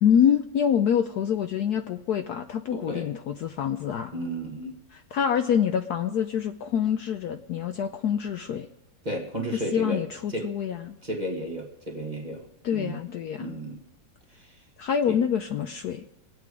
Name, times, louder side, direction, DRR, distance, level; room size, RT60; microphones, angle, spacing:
voice 1, 0.0-4.1 4.9-8.7 9.5-11.0 12.6-13.6 14.8-16.0, left 8 dB, 65° left, 7 dB, 1.0 m, -26 dB
voice 2, 2.7-3.1 4.1-4.8 9.0-10.0 10.3-10.5 11.0-12.4 12.7-13.0 13.4-13.8 14.3-14.6 15.1-15.2, right 1 dB, 25° right, 1 dB, 1.5 m, -33 dB
23.5 x 8.3 x 4.8 m, 0.90 s
omnidirectional pair, 2.1 m